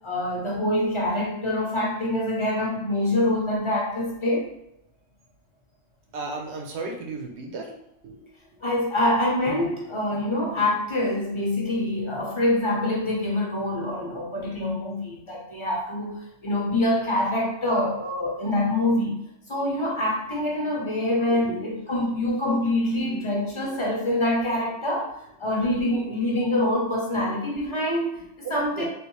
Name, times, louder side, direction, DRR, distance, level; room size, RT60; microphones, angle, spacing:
voice 1, 0.0-4.5 8.6-19.2 19.5-25.1 25.4-28.9, left 1 dB, 30° left, -3 dB, 0.7 m, -25 dB
voice 2, 6.1-7.7 8.0-8.2 21.4-21.6 28.4-28.9, right 3 dB, 80° right, 2 dB, 1.0 m, -34 dB
3.4 x 2.6 x 3.0 m, 0.83 s
omnidirectional pair, 1.1 m